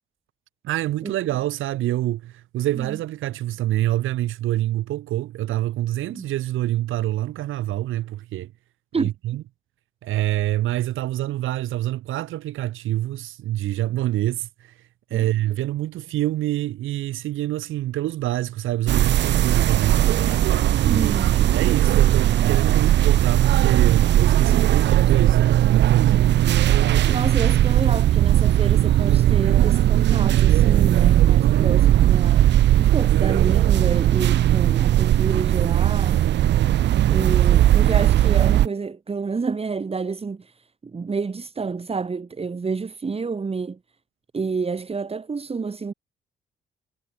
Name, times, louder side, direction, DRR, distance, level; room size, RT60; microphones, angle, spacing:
voice 1, 0.6-8.5 8.9-9.4 10.0-14.7 15.1-20.2 20.7-26.3, right 14 dB, 85° right, 5.2 m, -26 dB
sound 1, 18.9-38.7, right 12 dB, 65° right, 0.6 m, -18 dB
voice 2, 20.8-21.3 27.1-32.5 32.8-36.3 37.1-40.6 40.9-43.8 44.3-45.9, right 4 dB, 30° right, 2.6 m, -29 dB
cardioid pair, 90°, 20 cm